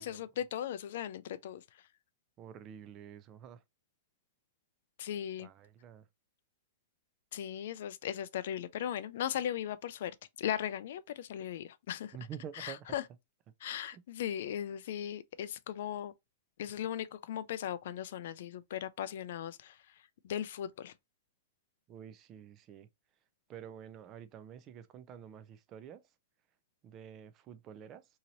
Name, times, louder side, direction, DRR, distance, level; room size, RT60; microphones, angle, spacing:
voice 1, 0.0-1.6 5.0-5.5 7.3-10.1 10.4-12.2 12.6-13.0 13.6-16.1 16.6-19.8 20.2-20.9, left 10 dB, 60° left, 0.3 m, -38 dB
voice 2, 2.4-3.6 5.4-6.1 12.1-13.0 13.9-14.0 21.9-22.9 23.5-26.0 26.8-28.1, right 9 dB, 25° right, 0.3 m, -48 dB
2.9 x 2.7 x 2.6 m
hypercardioid pair, 160°, 0 cm